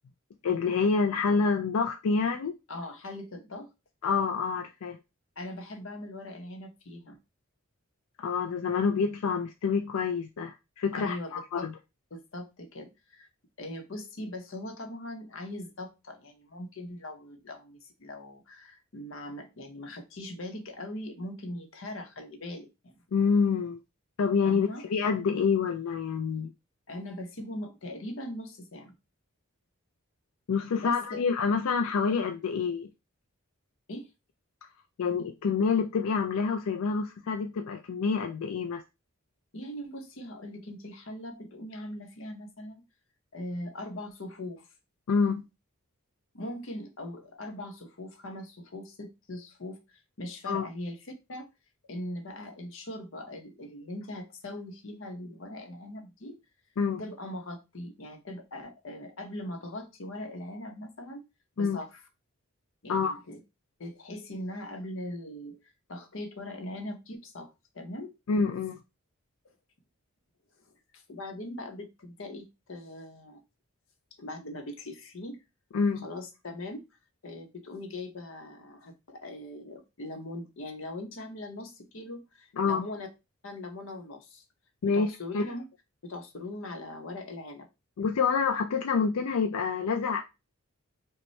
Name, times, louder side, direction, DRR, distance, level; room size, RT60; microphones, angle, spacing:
voice 1, 0.4-2.5 4.0-5.0 8.2-11.7 23.1-23.8 24.2-26.5 30.5-32.9 35.0-38.8 45.1-45.4 50.5-50.7 56.8-57.0 61.6-61.8 62.9-63.2 68.3-68.8 75.7-76.0 82.6-82.8 84.8-85.4 88.0-90.2, left 5 dB, 85° left, 0.4 m, -27 dB
voice 2, 2.7-3.7 5.4-7.2 10.9-11.7 12.1-13.3 13.6-23.0 24.4-24.9 26.9-28.9 30.7-31.2 33.9-34.1 39.5-42.9 43.3-44.7 46.3-49.8 50.2-51.0 51.3-51.5 51.9-56.4 57.0-61.2 61.6-62.0 62.8-63.4 63.8-65.6 65.9-68.1 69.4-69.5 70.9-73.4 74.2-75.4 76.0-76.9 77.2-83.1 83.4-84.4 84.9-85.7 86.0-87.7, left 1 dB, 65° left, 0.8 m, -40 dB
5.2 x 2.2 x 3.1 m
head